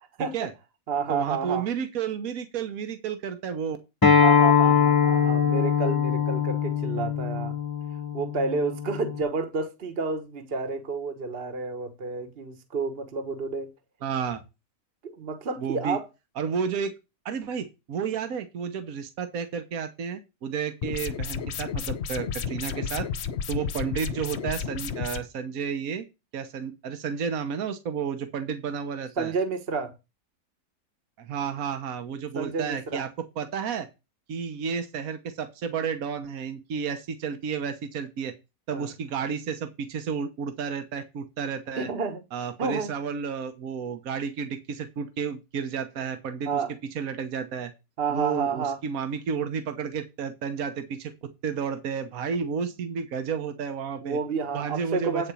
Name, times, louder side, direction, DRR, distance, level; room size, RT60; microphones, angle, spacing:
voice 1, 0.2-0.5 0.9-1.7 4.2-7.6 8.1-13.7 15.0-16.1 29.2-29.9 32.3-33.1 38.7-38.9 41.8-42.2 42.6-42.9 46.5-46.7 48.0-48.8 54.0-55.3, right 4 dB, 40° right, 1.4 m, -30 dB
voice 2, 1.1-3.8 14.0-14.4 15.6-16.0 16.4-16.9 17.2-23.1 23.5-26.0 26.3-29.3 31.2-33.1 33.4-33.9 34.3-38.3 38.7-41.9 42.3-46.6 46.9-47.7 48.1-51.1 51.4-54.2 54.5-55.3, right 6 dB, 70° right, 1.5 m, -31 dB
Acoustic guitar, 4.0-9.2, left 7 dB, 20° left, 0.6 m, -22 dB
sound 1, 20.8-25.2, left 7 dB, 55° left, 0.9 m, -32 dB
9.1 x 4.4 x 7.0 m
omnidirectional pair, 1.6 m